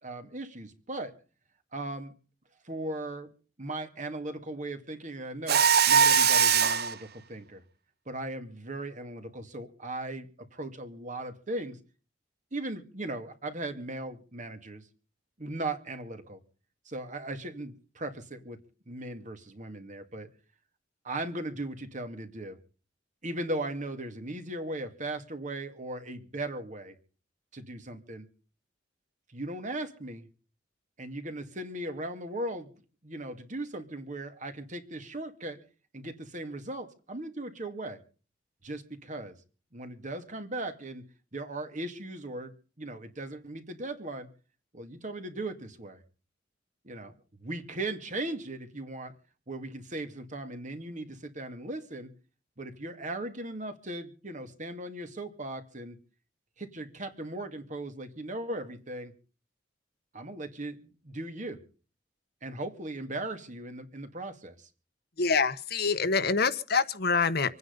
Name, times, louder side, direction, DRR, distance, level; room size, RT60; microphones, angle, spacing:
voice 1, 0.0-1.1 1.7-2.1 2.6-3.3 3.6-7.6 8.1-11.8 12.5-14.9 15.4-16.4 16.9-20.3 21.0-22.6 23.2-26.9 27.5-28.3 29.3-30.3 31.0-32.7 33.0-35.6 35.9-38.0 38.6-39.3 39.7-41.0 41.3-44.3 44.7-46.0 46.8-47.1 47.4-49.1 49.5-52.1 52.6-56.0 56.6-59.1 60.1-61.6 62.4-64.7, right 2 dB, 45° right, 2.3 m, -38 dB
Mechanisms, 5.5-6.9, right 7 dB, 60° right, 0.8 m, -21 dB
voice 2, 65.2-67.6, left 5 dB, 60° left, 1.2 m, -26 dB
26.0 x 9.6 x 5.3 m
head